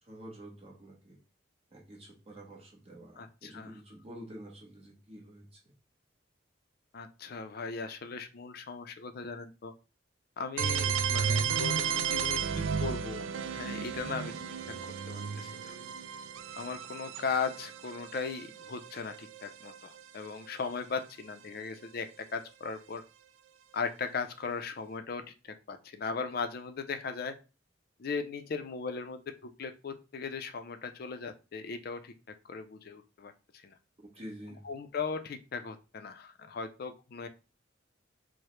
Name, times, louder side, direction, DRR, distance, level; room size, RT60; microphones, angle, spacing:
voice 1, 0.1-1.2 1.7-5.6 34.0-34.6, equal, 30° right, -2 dB, 0.9 m, -48 dB
voice 2, 3.2-3.7 6.9-9.7 10.4-14.3 15.1-15.8 16.6-23.0 23.7-25.2 25.5-27.3 28.0-32.1 32.5-33.8 34.6-37.3, left 5 dB, 50° left, 8 dB, 0.4 m, -38 dB
sound 1, 10.6-20.3, right 7 dB, 85° right, 0.3 m, -34 dB
4.7 x 2.1 x 3.1 m, 0.31 s
head